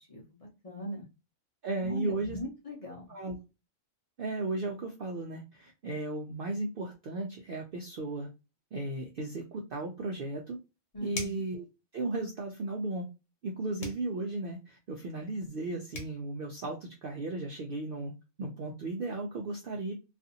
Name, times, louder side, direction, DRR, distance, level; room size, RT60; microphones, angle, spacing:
voice 1, 0.1-1.1 1.8-3.1 10.9-11.3, equal, 35° left, -3 dB, 0.6 m, -40 dB
voice 2, 1.6-2.4 3.1-3.3 4.2-8.3 8.7-10.6 11.0-11.6 11.9-13.1 13.4-18.1 18.4-19.9, right 2 dB, 65° right, 1 dB, 0.5 m, -35 dB
sound 1, 11.1-11.5 13.8-14.1 15.6-15.7 15.9-16.2, left 2 dB, 65° left, 1.2 m, -40 dB
2.5 x 2.4 x 2.6 m, 0.28 s
omnidirectional pair, 1.4 m